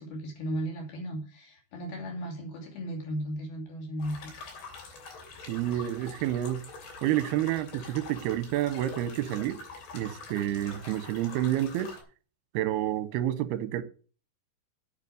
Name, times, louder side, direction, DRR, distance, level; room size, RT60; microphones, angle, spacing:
voice 1, 0.0-4.3, right 1 dB, 70° left, 4.5 m, -35 dB
sound 1, 4.0-12.0, left 4 dB, 90° left, 5.1 m, -45 dB
voice 2, 5.5-6.6 7.0-9.6 9.9-12.0 12.5-13.8, right 13 dB, 80° right, 2.9 m, -29 dB
8.9 x 8.3 x 6.9 m
omnidirectional pair, 4.6 m